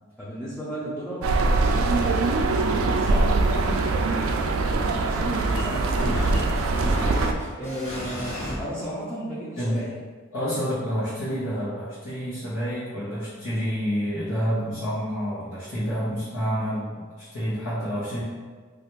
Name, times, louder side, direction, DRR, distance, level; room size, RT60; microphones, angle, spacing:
voice 1, 0.2-3.5 3.9-6.6 7.5-9.9, equal, 5° left, -9 dB, 0.4 m, -35 dB
sound 1, 1.2-7.3, right 3 dB, 75° right, 0.3 m, -23 dB
voice 2, 3.0-3.3 9.5-9.8 10.3-18.2, equal, 90° left, -12 dB, 0.9 m, -28 dB
sound 2, 3.3-8.6, equal, 35° left, 1.1 m, -35 dB
3.4 x 2.4 x 2.9 m, 1.5 s
head